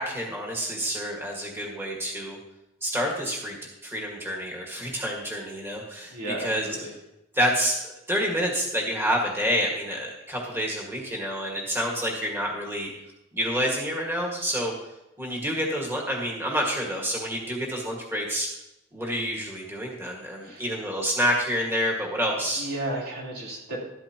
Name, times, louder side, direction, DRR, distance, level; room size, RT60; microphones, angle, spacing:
voice 1, 0.0-2.4 2.8-3.6 3.8-6.1 6.4-6.7 7.3-7.8 8.1-12.9 13.3-14.7 15.2-18.5 18.9-22.7, equal, 10° right, -2 dB, 1.8 m, -28 dB
voice 2, 6.1-6.9 20.4-20.7 22.6-23.8, right 1 dB, 85° right, -4 dB, 3.6 m, -33 dB
12.5 x 12.5 x 3.0 m, 0.89 s
head